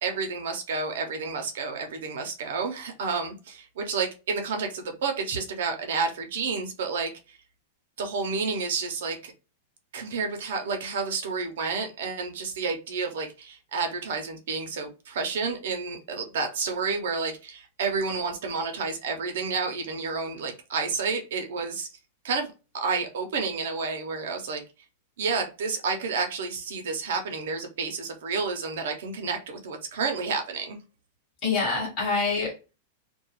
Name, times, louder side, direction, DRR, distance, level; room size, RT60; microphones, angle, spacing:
voice 1, 0.0-7.4 8.0-9.3 9.9-21.9 22.2-24.6 25.2-30.8, right 4 dB, 65° right, 4 dB, 0.6 m, -30 dB
voice 2, 31.4-32.7, left 4 dB, 20° left, -6 dB, 1.0 m, -26 dB
2.3 x 2.1 x 3.0 m, 0.31 s
supercardioid pair, 175°, 0 cm